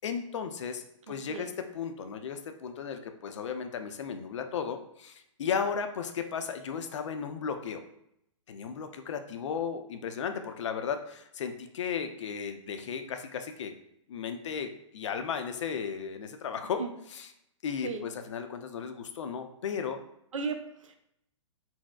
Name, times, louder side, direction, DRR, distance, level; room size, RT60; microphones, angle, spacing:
voice 1, 0.0-7.8 8.5-13.7 14.1-16.8 17.1-17.3 17.6-20.0, left 6 dB, 65° left, 7 dB, 0.4 m, -35 dB
voice 2, 1.1-1.5 16.8-16.9 17.8-18.1 20.3-21.0, right 5 dB, 75° right, 6 dB, 0.5 m, -35 dB
4.1 x 2.0 x 2.2 m, 0.76 s
hypercardioid pair, 125°, 16 cm